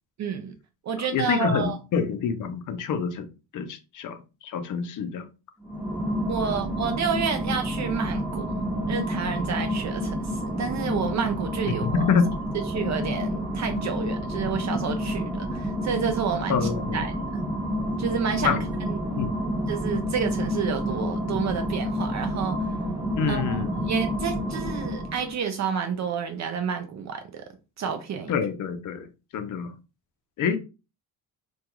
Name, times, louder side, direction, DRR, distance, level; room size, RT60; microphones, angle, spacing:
voice 1, 0.2-0.5 0.8-1.8 6.3-8.5 8.9-10.2 10.4-12.1 12.7-17.4 18.0-18.9 19.7-22.6 23.3-27.4 27.8-28.3, right 6 dB, 45° right, 0.4 m, -30 dB
voice 2, 1.1-3.3 3.5-5.3 11.8-12.4 16.5-17.0 18.4-18.6 19.2-19.3 23.2-23.8 28.3-29.1 29.3-29.7 30.4-30.6, left 6 dB, 55° left, 0.5 m, -26 dB
sound 1, 5.6-25.4, equal, 10° right, 0.8 m, -29 dB
2.3 x 2.3 x 2.9 m
cardioid pair, 100°, 39 cm